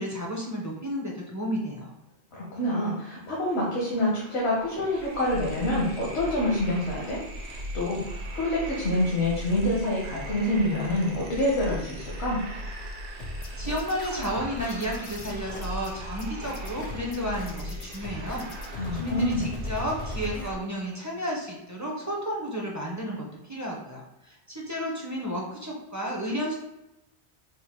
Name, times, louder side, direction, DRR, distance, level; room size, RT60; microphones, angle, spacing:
voice 1, 0.0-2.0 13.6-26.6, equal, 25° right, -2 dB, 0.4 m, -32 dB
voice 2, 2.3-7.2 7.5-12.4 18.8-19.5, left 1 dB, 80° left, -5 dB, 1.1 m, -27 dB
sound 1, 3.6-3.7 3.9-20.6, equal, 55° right, 0.8 m, -38 dB
sound 2, 13.2-20.5, left 4 dB, 55° left, 0.6 m, -40 dB
4.5 x 2.1 x 3.5 m, 0.92 s
omnidirectional pair, 1.1 m